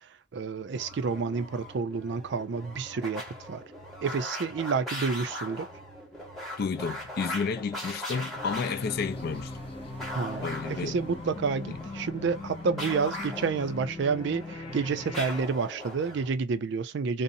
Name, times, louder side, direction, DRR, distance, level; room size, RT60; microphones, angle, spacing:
voice 1, 0.3-3.6 4.0-5.7 10.1-17.2, right 5 dB, 60° right, 0.4 m, -29 dB
sound 1, 0.7-16.4, left 1 dB, ahead, 1.0 m, -40 dB
voice 2, 6.6-9.5 10.4-11.0 11.7-11.8, left 5 dB, 50° left, 0.3 m, -31 dB
sound 2, 8.3-15.4, left 2 dB, 30° left, 0.7 m, -40 dB
2.6 x 2.0 x 2.6 m
head